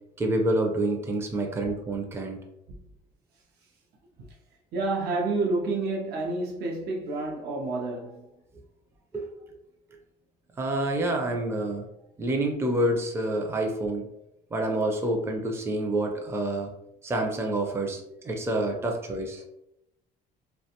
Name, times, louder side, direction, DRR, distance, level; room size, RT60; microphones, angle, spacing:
voice 1, 0.2-2.4 9.1-9.2 10.6-11.8 12.2-14.1 14.5-16.7 17.0-19.4, right 1 dB, 15° right, 0.4 m, -28 dB
voice 2, 4.7-8.3 18.7-18.8, right 3 dB, 75° right, 0.5 m, -29 dB
2.4 x 2.2 x 2.8 m
cardioid pair, 110°, 17 cm